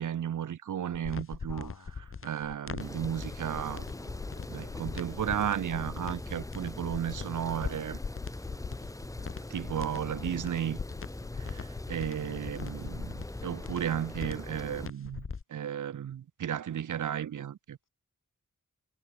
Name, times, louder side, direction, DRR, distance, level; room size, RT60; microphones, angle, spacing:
voice 1, 0.0-1.7 2.2-3.9 4.5-8.0 9.5-10.8 11.4-17.8, right 9 dB, 65° right, 0.5 m, -34 dB
sound 1, 0.9-15.4, left 5 dB, 40° left, 0.8 m, -40 dB
voice 2, 1.5-2.0 3.9-4.9 10.0-10.1, left 5 dB, 75° left, 4.7 m, -53 dB
sound 2, 2.8-14.9, left 2 dB, 10° left, 0.6 m, -42 dB
wide cardioid pair, 60°, 32 cm